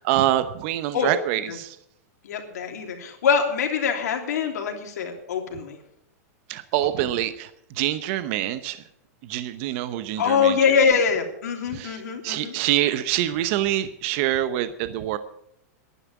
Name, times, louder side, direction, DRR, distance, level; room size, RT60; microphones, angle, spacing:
voice 1, 0.0-1.7 6.5-7.5 7.8-8.8 9.3-10.5 11.7-15.2, right 13 dB, 50° right, 12 dB, 0.9 m, -25 dB
voice 2, 2.2-5.8 6.8-7.1 10.2-12.5, left 6 dB, 80° left, 3 dB, 3.1 m, -24 dB
11.0 x 9.9 x 8.2 m, 0.76 s
hypercardioid pair, 135°, 9 cm